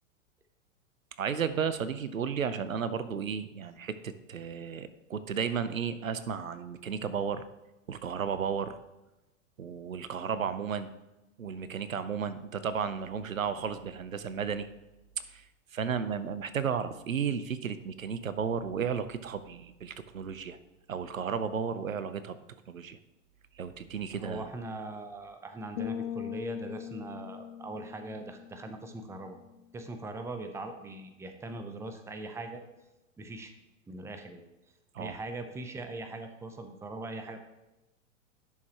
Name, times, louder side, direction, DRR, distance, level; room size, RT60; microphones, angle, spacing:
voice 1, 1.2-7.4 7.9-8.7 9.6-10.9 11.4-14.7 15.3-15.4 15.7-20.6 20.9-22.4 22.7-23.0 23.6-24.5 34.9-35.2, right 7 dB, 90° right, 13 dB, 0.7 m, -33 dB
voice 2, 24.1-29.4 29.7-32.6 33.2-33.5 33.9-34.4 35.0-37.4, right 2 dB, 5° right, 7 dB, 0.6 m, -41 dB
sound 1, 25.8-29.5, left 10 dB, 60° left, 0.5 m, -41 dB
10.5 x 6.5 x 3.0 m, 0.99 s
hypercardioid pair, 100°, 39 cm